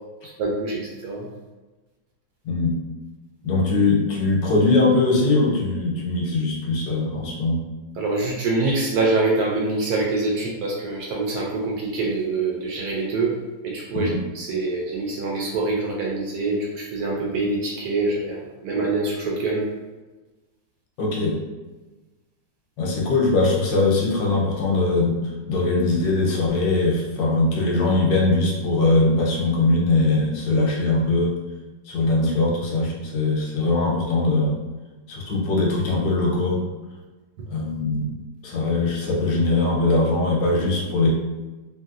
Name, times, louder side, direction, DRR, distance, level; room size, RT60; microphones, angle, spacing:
voice 1, 0.2-1.3 8.0-13.3 13.6-14.1 14.3-19.7, right 3 dB, 70° right, -2 dB, 0.9 m, -25 dB
voice 2, 2.4-2.8 3.4-7.6 13.9-14.2 21.0-21.4 22.8-31.4 31.9-34.6 35.1-36.6 37.5-38.1 38.4-41.1, left 2 dB, 75° left, -2 dB, 1.4 m, -21 dB
3.1 x 2.7 x 2.4 m, 1.2 s
omnidirectional pair, 1.9 m